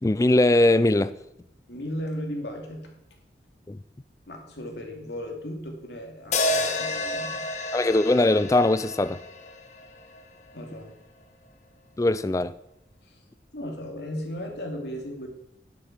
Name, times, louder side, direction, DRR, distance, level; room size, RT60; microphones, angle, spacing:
voice 1, 0.0-1.1 3.7-3.8 7.7-9.2 12.0-12.5, left 2 dB, 20° left, 0.4 m, -21 dB
voice 2, 1.7-2.9 4.3-7.4 10.5-11.0 13.0-13.2 13.5-15.3, equal, 80° left, 2.6 m, -36 dB
sound 1, 6.3-10.6, left 2 dB, 40° left, 1.1 m, -30 dB
11.0 x 8.4 x 6.1 m
head